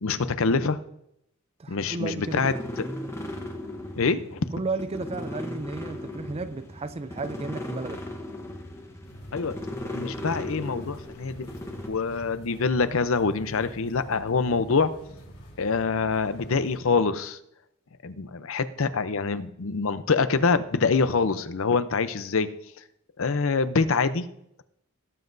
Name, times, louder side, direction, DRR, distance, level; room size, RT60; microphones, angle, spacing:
voice 1, 0.0-0.8 1.7-2.5 4.0-4.4 9.3-9.6 9.9-11.5 11.9-14.9 15.6-17.4 18.0-22.5 23.2-24.3, left 4 dB, 65° left, 0.6 m, -25 dB
voice 2, 1.6-2.7 4.5-8.1, right 3 dB, 25° right, 0.4 m, -33 dB
sound 1, 2.0-11.9, left 1 dB, 10° left, 1.0 m, -37 dB
sound 2, 9.0-16.8, equal, 85° left, 3.7 m, -46 dB
18.0 x 7.5 x 2.6 m
head